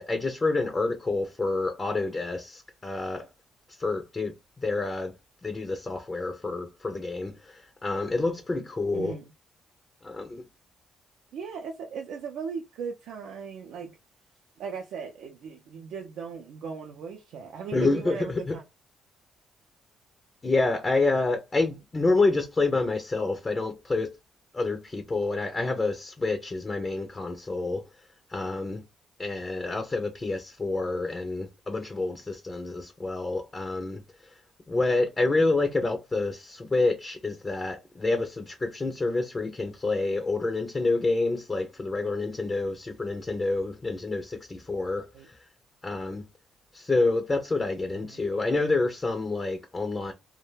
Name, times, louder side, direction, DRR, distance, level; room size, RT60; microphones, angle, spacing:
voice 1, 0.0-3.2 3.8-4.3 4.6-5.1 5.4-9.1 10.0-10.4 17.7-18.2 18.5-18.6 20.4-24.1 24.5-27.8 28.3-28.8 29.2-34.0 34.7-45.1 45.8-46.2 46.7-50.1, left 3 dB, 25° left, 0.4 m, -28 dB
voice 2, 8.9-9.3 11.3-14.0 14.6-18.6 45.1-45.3 47.9-48.2, right 6 dB, 80° right, 0.4 m, -38 dB
2.2 x 2.1 x 3.2 m
cardioid pair, 90°, 0 cm